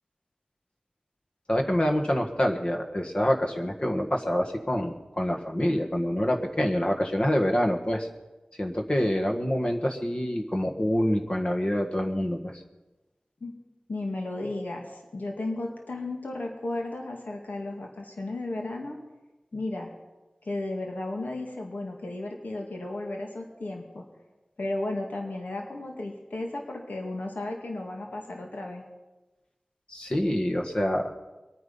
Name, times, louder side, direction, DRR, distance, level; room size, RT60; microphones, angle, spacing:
voice 1, 1.5-8.1 8.6-12.5 29.9-31.1, equal, 40° left, 2 dB, 1.6 m, -26 dB
voice 2, 13.9-19.0 19.5-19.9 20.4-24.0 24.6-28.8, left 2 dB, 80° left, 1 dB, 2.2 m, -34 dB
23.0 x 9.4 x 5.5 m, 1.1 s
wide cardioid pair, 55°, 3 cm